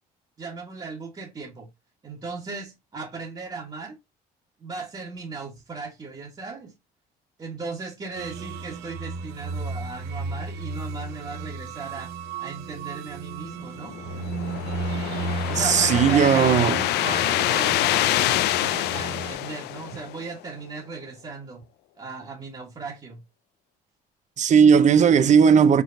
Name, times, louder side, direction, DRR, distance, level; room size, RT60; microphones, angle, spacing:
voice 1, 0.4-1.7 2.0-4.0 4.6-6.7 7.4-12.1 12.4-13.9 15.5-18.1 18.6-21.6 22.0-23.2, right 4 dB, 25° right, 1.3 m, -37 dB
sound 1, 8.1-19.3, right 4 dB, 80° right, 0.7 m, -34 dB
sound 2, 13.8-20.3, left 16 dB, 80° left, 0.4 m, -26 dB
voice 2, 15.6-16.8 24.4-25.8, right 7 dB, 45° right, 0.6 m, -17 dB
4.6 x 4.4 x 2.5 m
cardioid pair, 110°, 17 cm